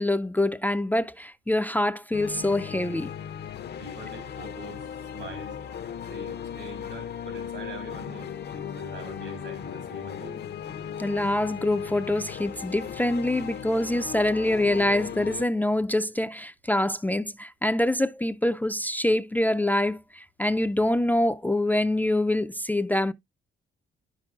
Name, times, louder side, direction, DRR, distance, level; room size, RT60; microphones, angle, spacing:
voice 1, 0.0-3.1 11.0-23.1, left 1 dB, 10° left, 0.4 m, -25 dB
sound 1, 2.1-15.5, left 8 dB, 55° left, 0.6 m, -37 dB
voice 2, 3.8-5.6 6.1-10.5, right 2 dB, 85° right, 4.0 m, -43 dB
9.7 x 6.0 x 2.3 m
cardioid pair, 90°, 20 cm